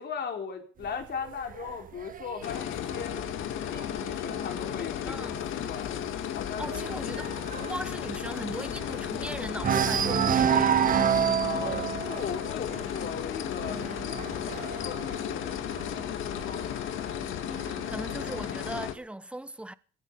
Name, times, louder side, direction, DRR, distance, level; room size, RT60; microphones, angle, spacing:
voice 1, 0.0-3.2 3.5-6.0 6.3-6.9 11.4-15.6 15.9-16.9, left 6 dB, 60° left, 3.8 m, -38 dB
sound 1, 0.8-4.4 4.8-5.2 5.4-5.5 5.9-9.2 9.6-16.1 17.0-18.0, right 8 dB, 45° right, 0.6 m, -29 dB
sound 2, 2.4-18.9, left 10 dB, 85° left, 1.9 m, -34 dB
voice 2, 5.0-5.4 6.6-7.3 7.6-10.8 17.6-19.7, right 1 dB, 5° right, 1.0 m, -39 dB
22.0 x 9.1 x 5.5 m
cardioid pair, 90°, 20 cm